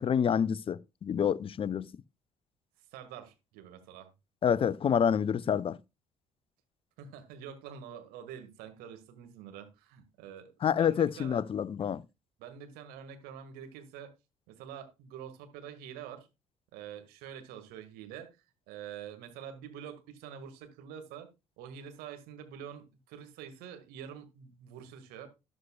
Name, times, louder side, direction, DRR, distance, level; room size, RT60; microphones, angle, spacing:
voice 1, 0.0-1.9 4.4-5.8 10.6-12.0, left 8 dB, 35° left, 0.5 m, -28 dB
voice 2, 2.9-4.1 7.0-11.4 12.4-14.1 14.5-16.3 16.7-18.4 18.7-21.3 21.6-25.3, right 8 dB, 65° right, 1.9 m, -46 dB
12.5 x 11.0 x 2.3 m
figure-of-eight pair, 50°, 17 cm